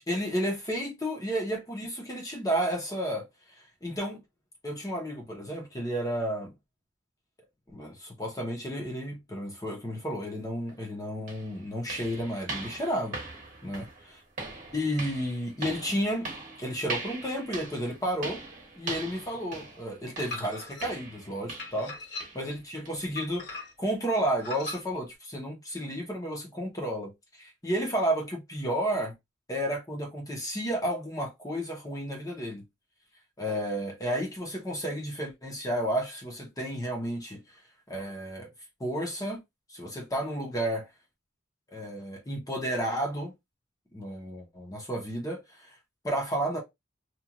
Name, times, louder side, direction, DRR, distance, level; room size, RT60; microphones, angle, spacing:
voice 1, 0.0-3.3 3.8-4.2 4.6-6.5 7.7-13.2 13.6-13.8 14.7-16.3 16.6-18.4 18.8-21.9 22.3-23.5 23.8-27.1 27.4-29.1 29.5-32.6 33.4-37.4 37.9-38.5 38.8-39.4 39.7-40.9 41.7-43.3 43.9-45.7 46.0-46.6, equal, 20° left, 0.8 m, -32 dB
sound 1, 10.7-10.8 11.3-21.9 22.2-22.5 22.9-23.0 23.5-23.6 24.2-24.3, right 3 dB, 45° right, 1.0 m, -41 dB
sound 2, 20.3-20.9 21.6-22.5 23.2-23.9 24.4-24.8, left 2 dB, 60° left, 1.6 m, -39 dB
2.9 x 2.4 x 2.4 m
head